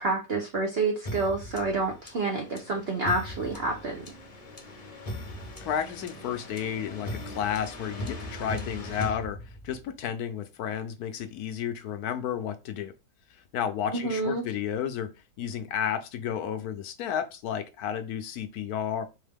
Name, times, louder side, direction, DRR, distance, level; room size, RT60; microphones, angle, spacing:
voice 1, 0.0-4.1 14.0-14.4, right 3 dB, 55° right, 0.7 m, -28 dB
sound 1, 1.0-9.9, left 1 dB, 35° left, 0.6 m, -39 dB
voice 2, 5.6-9.4 9.6-12.9 13.5-15.1 15.4-19.0, left 8 dB, 70° left, 1.0 m, -32 dB
4.1 x 3.6 x 3.5 m
omnidirectional pair, 1.8 m